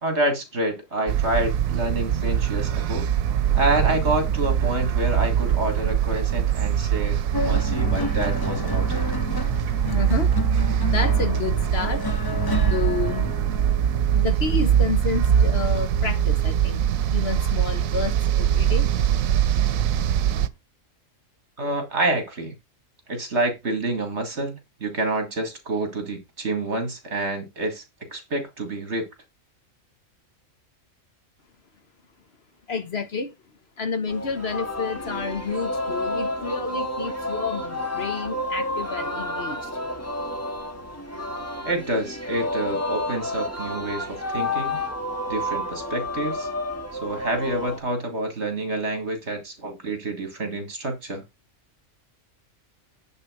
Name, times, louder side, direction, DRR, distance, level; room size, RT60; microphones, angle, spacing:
voice 1, 0.0-3.1 3.5-9.0 21.6-22.6 23.1-27.8 28.1-29.1 41.6-44.8 45.3-46.5 47.0-51.2, right 1 dB, 55° right, 2.7 m, -28 dB
sound 1, 1.1-20.5, right 9 dB, 90° right, 1.1 m, -22 dB
sound 2, 7.3-16.1 17.0-17.3, left 3 dB, 35° left, 0.4 m, -32 dB
voice 2, 9.8-12.0 12.7-13.3 14.1-16.8 17.1-18.9 32.7-33.3 33.8-39.8, left 4 dB, 55° left, 1.3 m, -30 dB
Singing, 34.1-47.8, left 1 dB, 10° left, 1.6 m, -30 dB
9.8 x 3.8 x 6.3 m
omnidirectional pair, 1.4 m